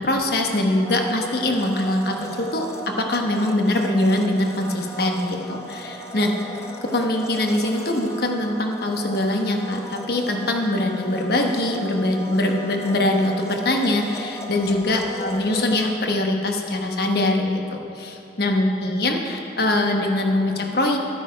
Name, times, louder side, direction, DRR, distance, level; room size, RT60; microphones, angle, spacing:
voice 1, 0.0-6.3 6.8-21.0, left 1 dB, 60° left, 2 dB, 1.1 m, -23 dB
Domestic sounds home sounds, 0.8-16.0, right 2 dB, 15° left, 0.7 m, -37 dB
11.0 x 9.1 x 5.0 m, 2.8 s
head